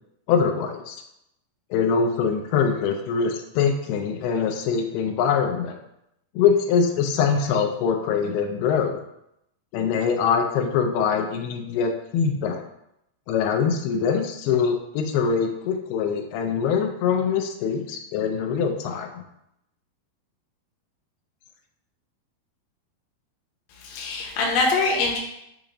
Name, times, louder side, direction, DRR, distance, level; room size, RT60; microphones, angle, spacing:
voice 1, 0.3-1.0 1.7-5.8 6.4-9.0 9.7-12.6 13.3-19.2, left 6 dB, 90° left, 4 dB, 2.6 m, -23 dB
voice 2, 23.7-25.2, left 3 dB, 70° left, -2 dB, 2.2 m, -23 dB
6.5 x 2.6 x 2.9 m, 0.81 s
omnidirectional pair, 4.4 m